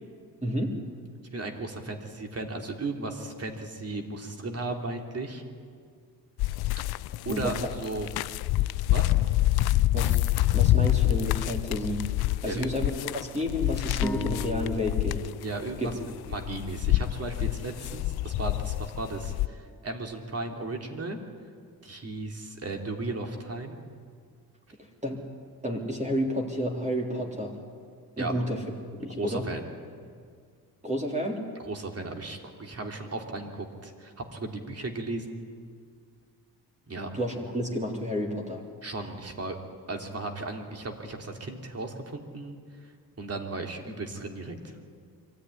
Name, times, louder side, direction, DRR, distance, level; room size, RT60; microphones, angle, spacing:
voice 1, 0.4-0.7 7.3-7.5 9.9-10.2 10.5-12.0 12.4-15.3 15.8-15.9 24.8-25.2 25.6-27.5 28.2-28.6 28.9-29.4 30.8-31.4 37.1-38.6, equal, 20° right, 0 dB, 3.5 m, -30 dB
voice 2, 1.3-5.4 6.8-6.9 7.2-8.1 8.9-9.1 12.5-12.8 15.4-15.9 16.3-21.2 21.8-23.8 28.2-28.3 29.2-29.7 31.7-35.4 36.9-37.1 38.8-39.6 39.9-42.6 43.2-44.8, right 2 dB, 40° right, 3 dB, 2.9 m, -35 dB
sound 1, 6.4-19.5, left 16 dB, 85° left, 0.5 m, -27 dB
sound 2, 14.0-17.6, equal, 5° left, 2.4 m, -39 dB
24.0 x 14.5 x 9.9 m, 2.1 s
cardioid pair, 95°, 37 cm